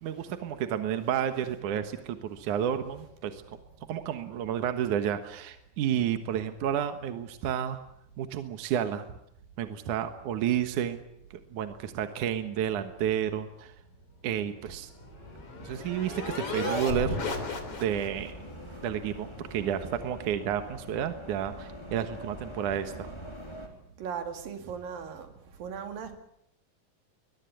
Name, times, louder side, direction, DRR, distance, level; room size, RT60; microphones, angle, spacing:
voice 1, 0.0-3.6 3.9-7.8 8.2-9.1 9.6-11.0 11.3-13.7 14.2-14.9 15.6-17.1 17.8-18.3 18.8-23.1, right 9 dB, 70° right, 2.7 m, -31 dB
sound 1, 14.7-18.3, left 4 dB, 45° left, 4.0 m, -35 dB
sound 2, 14.8-23.7, equal, 10° left, 4.3 m, -45 dB
voice 2, 16.5-17.1 24.0-25.3 25.6-26.2, right 7 dB, 85° right, 4.2 m, -37 dB
23.0 x 21.5 x 8.4 m
omnidirectional pair, 3.9 m